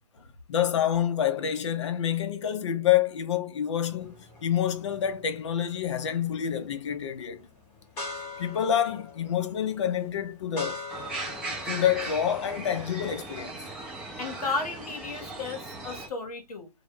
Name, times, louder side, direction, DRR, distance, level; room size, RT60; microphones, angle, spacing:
voice 1, 0.5-7.4 8.4-10.8 11.5-13.7, left 9 dB, 45° left, 0.5 m, -27 dB
sound 1, 3.8-13.1, left 2 dB, 15° left, 0.9 m, -44 dB
sound 2, 10.9-16.1, right 2 dB, 5° right, 0.5 m, -38 dB
voice 2, 14.2-16.7, left 3 dB, 70° left, 0.8 m, -34 dB
2.1 x 2.1 x 3.3 m
hypercardioid pair, 150°, 20 cm